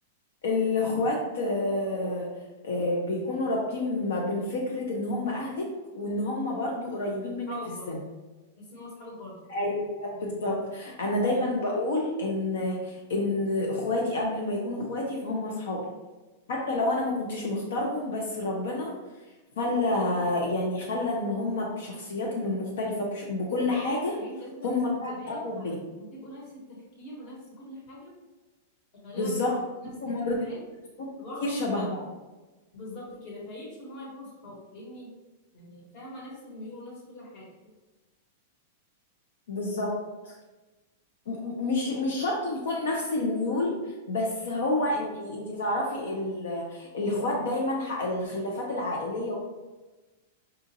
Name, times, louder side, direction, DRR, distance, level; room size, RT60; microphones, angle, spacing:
voice 1, 0.4-7.6 7.9-8.0 9.5-15.8 16.5-18.9 19.6-24.2 24.6-25.8 29.2-29.5 29.8-30.3 31.0-31.1 31.4-32.0 39.5-40.0 40.2-40.3 41.3-49.4, left 2 dB, 80° left, -2 dB, 0.7 m, -29 dB
voice 2, 7.5-7.9 8.6-9.6 24.2-24.8 25.1-28.1 29.0-30.6 31.2-31.6 32.7-35.1 35.5-37.5, left 1 dB, 45° left, -3 dB, 1.3 m, -43 dB
5.0 x 2.5 x 2.8 m, 1.2 s
supercardioid pair, 150°, 0 cm